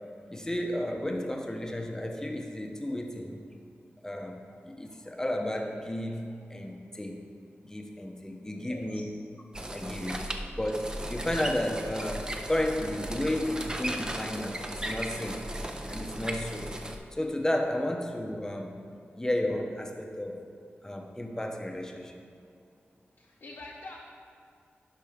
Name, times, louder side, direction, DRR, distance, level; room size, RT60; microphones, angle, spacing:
voice 1, 0.3-3.4 4.0-4.4 4.7-6.2 6.5-7.2 7.6-9.1 9.7-10.2 10.5-15.5 15.9-16.7 17.1-18.8 19.2-20.4 20.8-22.1, left 1 dB, 15° left, 2 dB, 0.7 m, -32 dB
voice 2, 8.5-9.0 23.2-24.0, left 2 dB, 70° left, -4 dB, 0.8 m, -45 dB
sound 1, 9.5-17.0, right 1 dB, 20° right, 0.5 m, -36 dB
10.5 x 5.0 x 3.5 m, 2.3 s
wide cardioid pair, 105°, 4 cm